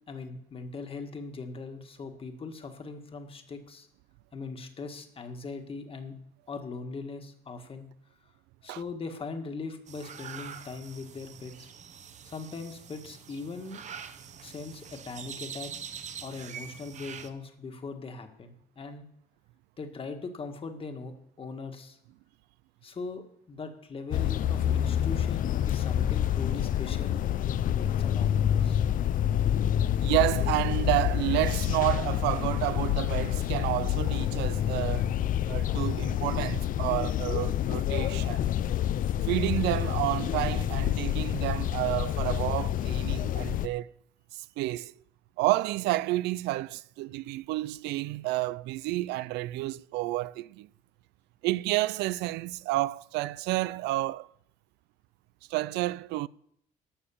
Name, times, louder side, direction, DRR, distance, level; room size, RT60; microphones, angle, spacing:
voice 1, 0.1-3.9 4.3-6.2 6.5-7.9 8.6-11.7 12.2-13.8 14.4-15.9 16.2-19.1 19.8-22.0 22.8-27.2 27.8-28.8, left 4 dB, 35° left, 1.7 m, -40 dB
sound 1, 9.9-17.3, right 7 dB, 45° right, 1.0 m, -44 dB
sound 2, 24.1-43.7, left 11 dB, 55° left, 0.5 m, -28 dB
voice 2, 30.0-35.1 35.5-38.5 39.2-43.9 44.3-44.9 45.4-50.7 51.4-54.3 55.5-56.3, right 18 dB, 85° right, 0.4 m, -30 dB
11.5 x 6.8 x 7.1 m
cardioid pair, 110°, 17 cm